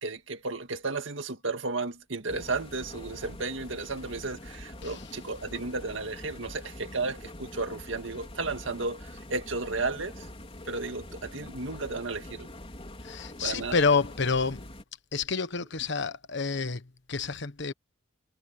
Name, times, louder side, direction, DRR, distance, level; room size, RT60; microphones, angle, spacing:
voice 1, 0.0-10.3 10.7-12.5 13.4-13.8, right 3 dB, 80° right, 2.0 m, -33 dB
sound 1, 2.3-14.8, left 1 dB, 30° left, 4.6 m, -45 dB
voice 2, 13.0-14.7 15.1-17.7, left 4 dB, 65° left, 1.3 m, -28 dB
head